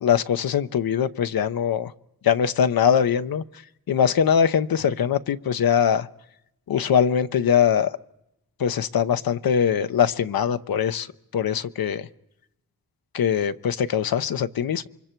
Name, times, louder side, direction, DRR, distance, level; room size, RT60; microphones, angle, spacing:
voice 1, 0.0-1.9 2.2-3.4 3.9-6.1 6.7-7.9 8.6-11.1 11.3-12.1 13.1-14.9, left 8 dB, 85° left, 11 dB, 0.7 m, -22 dB
28.0 x 24.0 x 4.5 m, 0.85 s
cardioid pair, 50°, 35 cm